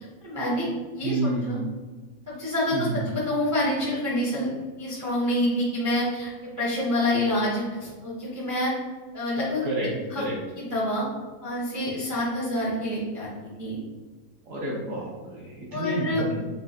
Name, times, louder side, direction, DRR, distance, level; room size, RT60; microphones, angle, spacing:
voice 1, 0.2-0.7 0.9-1.6 2.3-4.5 4.8-8.7 9.1-10.2 10.6-11.1 11.4-13.8 15.7-16.2, left 1 dB, 25° right, -6 dB, 0.4 m, -27 dB
voice 2, 1.0-1.7 2.7-3.0 9.6-10.4 14.4-16.5, right 2 dB, 60° right, -5 dB, 0.9 m, -30 dB
5.4 x 2.2 x 2.7 m, 1.4 s
omnidirectional pair, 2.0 m